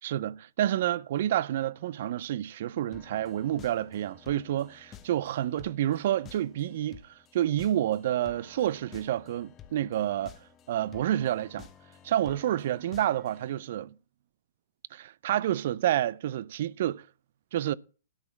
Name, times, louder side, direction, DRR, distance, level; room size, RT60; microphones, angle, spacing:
voice 1, 0.0-10.3 10.7-11.7 12.0-13.9 14.9-17.0 17.5-17.7, right 12 dB, 55° right, 0.4 m, -29 dB
sound 1, 2.9-13.6, left 9 dB, 25° left, 1.0 m, -52 dB
13.0 x 4.9 x 7.2 m
hypercardioid pair, 120°, 0 cm